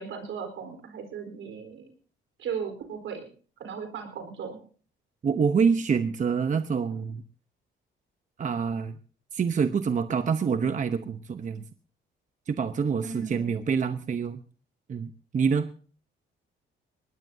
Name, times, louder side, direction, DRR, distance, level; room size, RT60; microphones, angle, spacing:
voice 1, 0.0-1.9 2.4-3.3 3.6-4.6 13.0-13.7, right 6 dB, 75° right, 6 dB, 4.2 m, -37 dB
voice 2, 5.2-7.2 8.4-9.0 9.3-11.6 12.5-14.4 14.9-15.7, right 6 dB, 40° right, 9 dB, 0.9 m, -26 dB
21.5 x 19.0 x 2.7 m, 0.41 s
cardioid pair, 90°, 20 cm